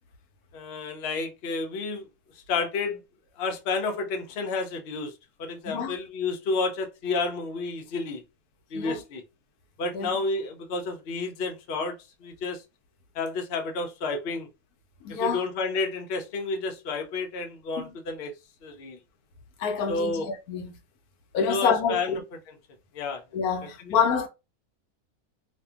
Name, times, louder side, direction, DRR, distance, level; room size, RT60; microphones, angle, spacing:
voice 1, 0.5-2.1 2.5-3.0 3.4-5.1 5.4-8.2 8.7-9.2 9.8-12.6 13.1-14.5 15.2-18.3 18.6-19.0 19.9-20.3 21.5-22.2 22.9-23.2 23.8-24.0, left 3 dB, 55° left, 0.7 m, -30 dB
voice 2, 5.7-6.0 8.7-9.0 9.9-10.1 15.0-15.4 17.8-17.9 19.6-20.8 21.3-22.2 23.3-24.3, left 6 dB, 80° left, 1.1 m, -27 dB
2.7 x 2.4 x 2.3 m
omnidirectional pair, 1.6 m